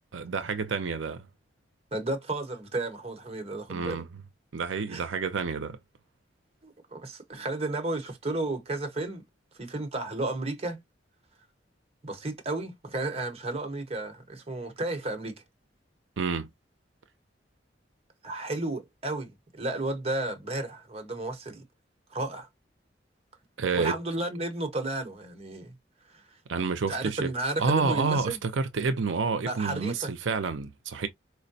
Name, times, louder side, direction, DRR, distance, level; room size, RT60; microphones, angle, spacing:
voice 1, 0.1-1.3 3.7-4.1 4.5-5.8 16.2-16.5 23.6-23.9 26.5-27.3 27.6-31.1, right 4 dB, 90° right, 0.6 m, -29 dB
voice 2, 1.9-4.0 4.9-5.0 6.6-9.2 9.5-10.8 12.0-15.4 18.2-21.6 22.1-22.5 23.8-25.7 26.1-26.2 26.9-28.4 29.4-30.1, right 2 dB, 35° right, 1.0 m, -33 dB
4.5 x 2.1 x 2.6 m
head